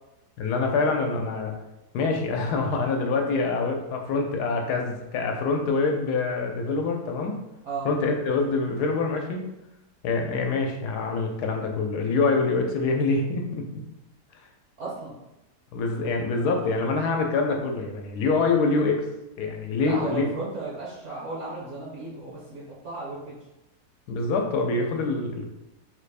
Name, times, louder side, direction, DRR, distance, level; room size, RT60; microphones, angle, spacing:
voice 1, 0.4-1.5 1.9-7.4 7.8-9.5 10.0-13.8 15.7-19.1 19.4-20.2 24.1-25.5, left 3 dB, 80° left, 3 dB, 1.2 m, -25 dB
voice 2, 14.8-15.1 19.8-23.4, right 3 dB, 55° right, -5 dB, 0.9 m, -35 dB
3.7 x 2.4 x 3.3 m, 0.94 s
omnidirectional pair, 1.7 m